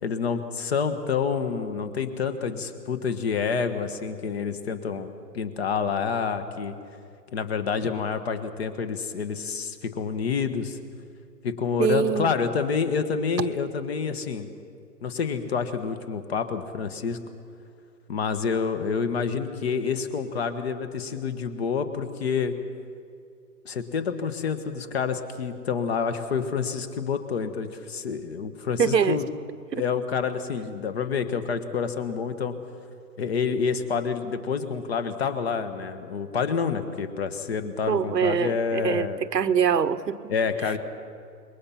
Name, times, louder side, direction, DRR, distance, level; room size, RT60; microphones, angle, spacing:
voice 1, 0.0-5.1 5.3-6.7 7.3-10.8 11.4-14.5 15.0-17.2 18.1-22.5 23.6-29.3 29.7-32.5 33.2-39.2 40.3-40.8, left 6 dB, 40° left, 10 dB, 1.6 m, -28 dB
voice 2, 11.8-12.3 28.8-29.2 29.7-29.8 37.9-40.3, right 7 dB, 85° right, 11 dB, 1.2 m, -24 dB
27.0 x 22.0 x 5.8 m, 2.4 s
hypercardioid pair, 155°, 49 cm